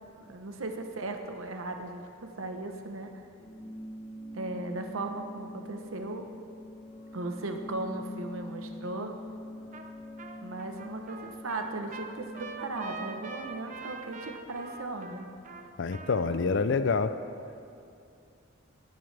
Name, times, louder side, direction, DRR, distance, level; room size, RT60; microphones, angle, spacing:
voice 1, 0.2-3.2 4.3-6.3 7.1-9.2 10.4-15.3, right 2 dB, 90° right, 5 dB, 1.0 m, -37 dB
sound 1, 3.4-13.4, left 1 dB, 30° left, 2.7 m, -44 dB
Trumpet, 9.7-9.9 10.2-16.4, right 4 dB, 40° right, 0.7 m, -44 dB
voice 2, 15.8-17.2, left 4 dB, 65° left, 12 dB, 0.5 m, -27 dB
18.5 x 9.4 x 3.4 m, 2.5 s
head